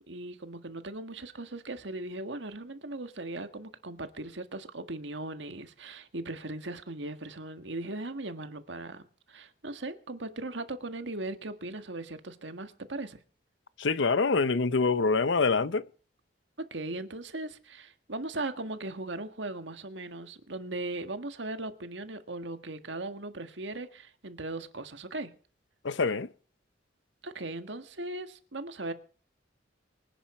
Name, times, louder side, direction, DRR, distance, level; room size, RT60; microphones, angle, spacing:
voice 1, 0.1-13.2 16.6-25.3 27.2-28.9, right 2 dB, 75° right, 1.7 m, -38 dB
voice 2, 13.8-15.8 25.8-26.3, left 4 dB, 80° left, 0.8 m, -25 dB
24.5 x 10.0 x 4.4 m
head